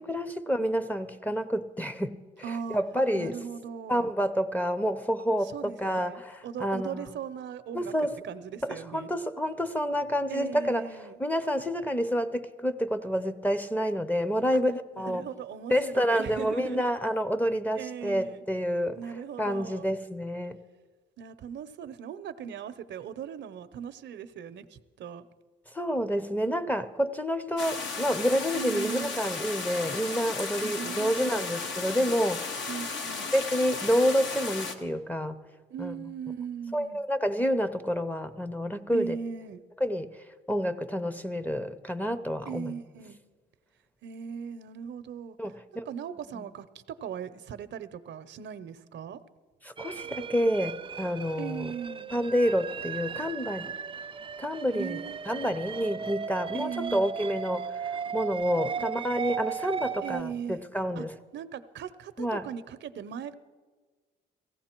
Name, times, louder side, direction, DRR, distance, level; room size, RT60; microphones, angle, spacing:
voice 1, 0.0-2.2 2.5-3.3 3.9-7.1 7.7-8.1 8.6-10.8 11.2-15.3 15.7-19.0 19.4-20.6 25.7-32.7 33.3-35.4 35.8-36.1 36.7-39.2 39.8-40.1 40.5-42.8 45.4-45.9 46.3-46.5 49.6-51.7 52.1-53.7 54.4-55.0 55.3-61.1 62.2-62.4, equal, 10° left, 13 dB, 0.7 m, -28 dB
voice 2, 2.4-2.8 3.1-4.1 5.4-7.9 8.2-9.1 10.3-11.2 14.5-14.6 14.9-16.9 17.7-18.4 18.9-19.9 21.2-25.2 28.5-29.2 30.6-31.5 32.7-33.3 35.7-37.0 38.9-39.6 42.5-43.2 44.0-45.4 45.9-49.2 51.4-52.1 54.7-55.4 56.5-57.1 58.8-58.9 60.0-60.7 61.0-61.1 61.3-63.3, right 8 dB, 65° right, 13 dB, 0.7 m, -39 dB
sound 1, 27.6-34.7, left 4 dB, 70° left, 1.3 m, -35 dB
sound 2, 49.8-60.2, right 7 dB, 25° right, 0.4 m, -36 dB
17.0 x 15.5 x 4.5 m, 1.4 s
cardioid pair, 90°, 20 cm